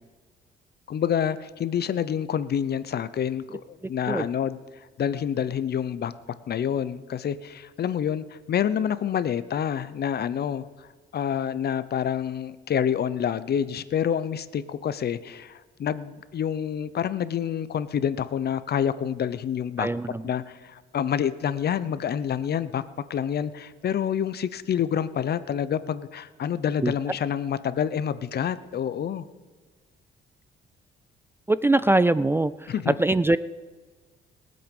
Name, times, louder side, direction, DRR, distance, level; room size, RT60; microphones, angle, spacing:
voice 1, 0.9-4.6 5.0-6.1 6.5-10.9 11.1-19.9 20.2-22.8 23.1-29.3 32.7-32.9, left 8 dB, 55° left, 15 dB, 0.8 m, -27 dB
voice 2, 19.8-20.2 26.8-26.9 31.5-32.7 33.0-33.4, right 2 dB, 10° right, 16 dB, 0.3 m, -22 dB
21.5 x 7.9 x 5.3 m, 1.4 s
cardioid pair, 90°, 20 cm